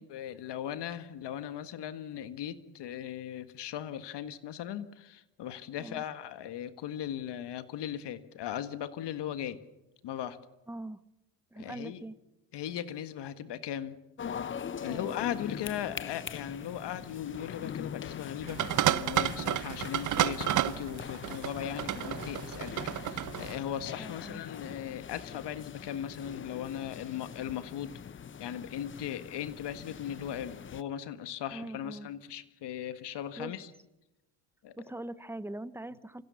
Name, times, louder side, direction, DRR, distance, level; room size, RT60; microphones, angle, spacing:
voice 1, 0.0-9.6 10.0-10.4 11.6-12.0 12.5-14.0 14.8-18.6 18.9-28.0 28.4-33.7 34.6-34.8, left 10 dB, 60° left, 12 dB, 1.7 m, -38 dB
voice 2, 10.7-11.0 11.5-12.2 14.8-15.2 24.0-24.4 31.5-32.1 33.4-33.5 34.8-36.2, right 1 dB, 5° right, 15 dB, 0.9 m, -42 dB
sound 1, 14.2-30.8, left 8 dB, 25° left, 0.7 m, -42 dB
sound 2, 18.5-23.6, right 12 dB, 40° right, 0.7 m, -31 dB
26.0 x 16.0 x 7.1 m, 0.97 s
supercardioid pair, 80°, 47 cm